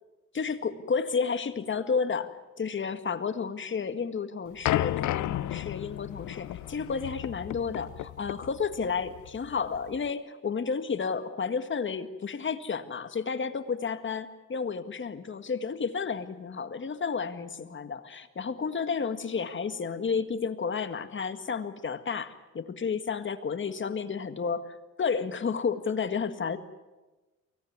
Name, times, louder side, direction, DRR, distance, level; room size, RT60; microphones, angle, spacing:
voice 1, 0.3-2.3 2.6-26.6, left 5 dB, 40° left, 9 dB, 1.9 m, -31 dB
sound 1, 4.6-10.1, left 15 dB, 75° left, 0.7 m, -33 dB
24.0 x 18.0 x 9.6 m, 1.1 s
cardioid pair, 90°, 30 cm